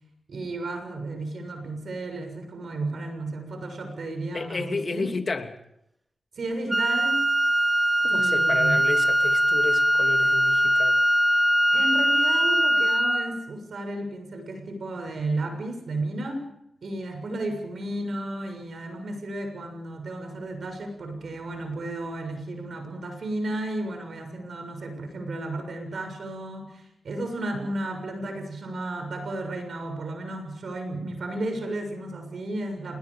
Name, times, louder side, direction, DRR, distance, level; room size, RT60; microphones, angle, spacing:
voice 1, 0.3-5.1 6.4-7.2 8.0-8.8 11.7-16.5 16.8-33.0, right 2 dB, 75° right, 5 dB, 6.9 m, -33 dB
voice 2, 4.3-5.5 8.1-11.0, left 3 dB, 55° left, 6 dB, 2.7 m, -31 dB
Wind instrument woodwind instrument, 6.7-13.4, equal, 10° right, 3.6 m, -21 dB
28.5 x 21.0 x 5.1 m, 0.79 s
cardioid pair, 40°, 0 cm